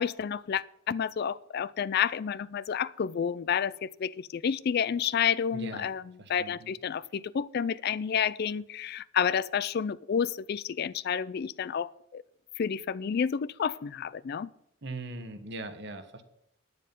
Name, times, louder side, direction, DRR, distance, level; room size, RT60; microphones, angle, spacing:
voice 1, 0.0-12.2 12.6-14.5, left 7 dB, 50° left, 0.3 m, -30 dB
voice 2, 5.5-5.9 6.2-6.7 14.8-16.2, right 2 dB, 55° right, 1.3 m, -40 dB
9.6 x 9.6 x 5.3 m
head